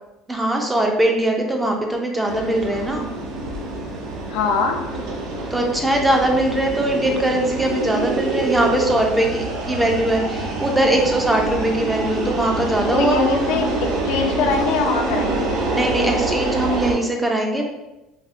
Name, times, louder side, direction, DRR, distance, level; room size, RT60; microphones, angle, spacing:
voice 1, 0.3-3.1 5.5-13.2 15.7-17.7, right 1 dB, 10° right, 1 dB, 0.4 m, -21 dB
sound 1, 2.3-16.9, right 2 dB, 70° right, 0.6 m, -26 dB
voice 2, 4.3-4.8 12.9-15.5, left 4 dB, 85° left, 3 dB, 0.4 m, -22 dB
4.0 x 2.0 x 2.5 m, 0.99 s
cardioid pair, 160°, 0 cm